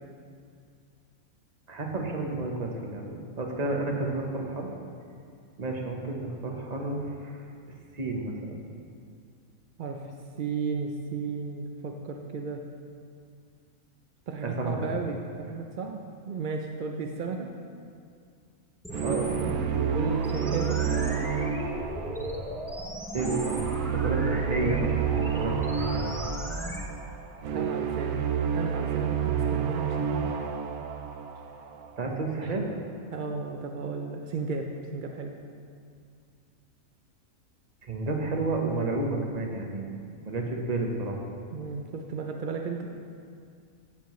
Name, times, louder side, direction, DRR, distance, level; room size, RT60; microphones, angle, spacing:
voice 1, 1.7-4.7 5.6-7.4 7.9-8.6 14.4-14.9 19.0-19.6 23.1-23.6 23.9-26.1 32.0-32.7 37.8-40.0 40.2-41.2, right 2 dB, 35° right, 1 dB, 1.0 m, -31 dB
voice 2, 9.8-12.6 14.3-16.0 16.3-17.5 19.1-20.8 27.5-28.2 28.5-30.3 32.4-32.6 33.1-35.3 41.5-42.9, right 4 dB, 65° right, 2 dB, 0.5 m, -34 dB
sound 1, 18.8-26.8, equal, 5° left, 0.4 m, -36 dB
sound 2, 18.9-32.0, right 7 dB, 85° right, 1.1 m, -30 dB
14.5 x 7.4 x 3.1 m, 2.3 s
omnidirectional pair, 1.5 m